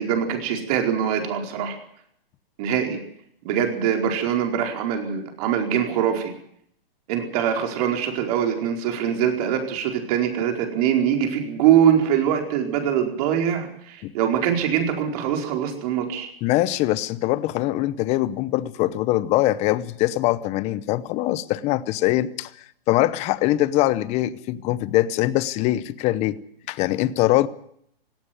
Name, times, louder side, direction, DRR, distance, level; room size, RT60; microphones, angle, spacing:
voice 1, 0.0-1.8 2.6-3.0 3.4-6.3 7.1-16.3, right 9 dB, 40° right, 4.7 m, -23 dB
voice 2, 16.4-22.5 22.9-26.4 26.7-27.5, left 15 dB, 20° left, 0.8 m, -22 dB
17.5 x 16.5 x 9.4 m
hypercardioid pair, 145°, 30 cm